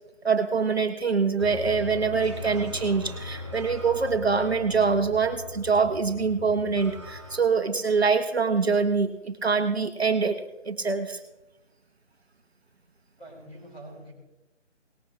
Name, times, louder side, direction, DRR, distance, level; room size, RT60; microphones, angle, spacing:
voice 1, 0.2-11.2, right 5 dB, 60° right, 6 dB, 1.2 m, -24 dB
sound 1, 1.4-7.4, left 3 dB, 25° right, 0.9 m, -39 dB
voice 2, 13.2-14.1, right 1 dB, 10° left, -8 dB, 3.7 m, -44 dB
19.5 x 9.1 x 3.1 m, 0.98 s
figure-of-eight pair, 175°, 37 cm